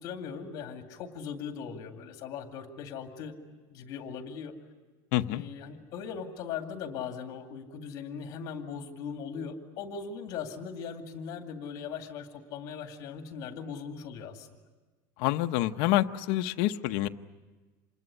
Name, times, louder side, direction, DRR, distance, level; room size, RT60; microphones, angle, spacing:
voice 1, 0.0-3.3 3.7-4.5 5.3-14.6, left 6 dB, 40° left, 5 dB, 2.4 m, -39 dB
voice 2, 5.1-5.4 15.2-17.1, left 15 dB, 55° left, 8 dB, 0.8 m, -27 dB
27.0 x 20.5 x 9.8 m, 1.3 s
cardioid pair, 180°, 10 cm